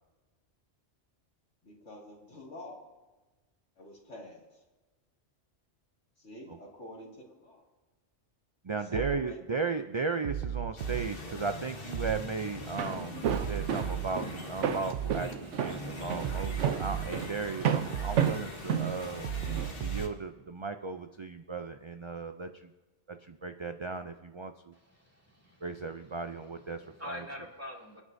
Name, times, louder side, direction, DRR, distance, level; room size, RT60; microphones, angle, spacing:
voice 1, 1.6-2.9 3.8-4.6 6.2-7.7 8.8-9.4, left 1 dB, 90° left, -2 dB, 2.8 m, -47 dB
voice 2, 8.6-19.3 19.8-22.7 23.1-24.7 25.6-27.2, right 4 dB, 50° right, 7 dB, 0.3 m, -36 dB
sound 1, 8.9-9.3 10.2-11.1 11.9-12.3 13.2-14.1 14.9-15.3 16.2-17.1 17.9-18.3 19.2-20.1, right 11 dB, 65° right, 0.8 m, -35 dB
sound 2, 10.8-20.1, left 2 dB, 50° left, 1.6 m, -43 dB
Walk footsteps, 12.6-19.7, right 8 dB, 85° right, 1.0 m, -32 dB
voice 3, 24.7-25.7 26.8-28.0, left 1 dB, 10° right, -1 dB, 2.4 m, -44 dB
28.0 x 9.7 x 2.7 m, 1.2 s
omnidirectional pair, 1.2 m